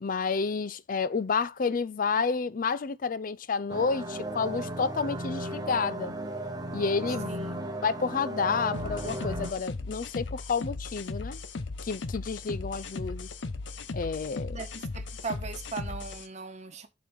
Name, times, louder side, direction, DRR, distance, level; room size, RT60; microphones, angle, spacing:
voice 1, 0.0-6.1 6.7-7.4 7.8-11.4 11.8-13.3 13.9-14.6, left 5 dB, 50° left, 0.5 m, -30 dB
sound 1, 3.7-9.5, right 1 dB, 20° right, 1.0 m, -35 dB
voice 2, 7.2-7.6 14.5-16.9, right 4 dB, 40° right, 1.2 m, -39 dB
sound 2, 8.7-16.3, left 3 dB, 85° left, 0.8 m, -37 dB
7.6 x 4.0 x 5.3 m
head